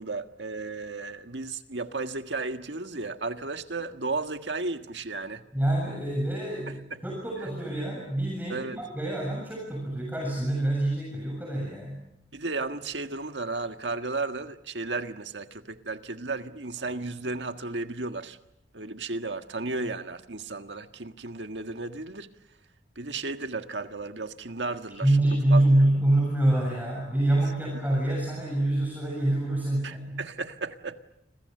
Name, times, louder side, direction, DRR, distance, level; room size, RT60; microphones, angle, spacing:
voice 1, 0.0-5.4 6.7-7.0 8.5-8.9 12.3-18.4 18.7-22.3 22.9-25.6 29.8-31.0, right 3 dB, 75° right, 1.7 m, -34 dB
voice 2, 5.5-12.0 25.0-30.2, right 1 dB, 10° right, 7.4 m, -26 dB
30.0 x 26.5 x 6.8 m
head